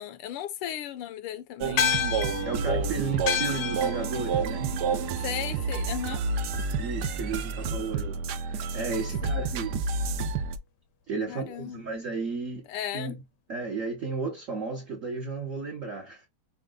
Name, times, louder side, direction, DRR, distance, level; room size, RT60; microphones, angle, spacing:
voice 1, 0.0-1.9 5.2-6.2 9.2-9.3 11.3-11.8 12.7-13.2, left 10 dB, 85° left, 1.6 m, -35 dB
sound 1, 1.6-10.6, right 4 dB, 90° right, 0.8 m, -29 dB
sound 2, 1.8-6.5, left 8 dB, 70° left, 1.0 m, -32 dB
voice 2, 2.4-4.8 6.8-9.8 11.1-12.6 12.9-13.2 13.5-16.3, right 4 dB, 60° right, 0.8 m, -34 dB
5.3 x 2.2 x 3.6 m
omnidirectional pair, 2.4 m